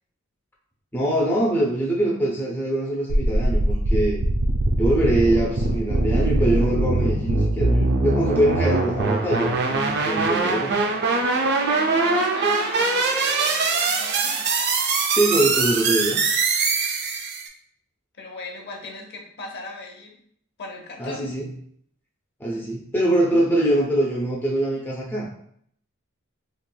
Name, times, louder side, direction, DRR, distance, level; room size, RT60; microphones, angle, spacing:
voice 1, 0.9-4.2 4.8-10.8 15.1-16.2 21.0-21.5 22.4-25.3, right 1 dB, 10° left, -3 dB, 0.4 m, -23 dB
sound 1, 3.1-17.5, right 3 dB, 50° right, 0.4 m, -22 dB
voice 2, 11.4-14.5 18.2-20.2 20.6-21.3, left 3 dB, 50° left, 0 dB, 0.7 m, -38 dB
3.1 x 2.9 x 2.2 m, 0.67 s
head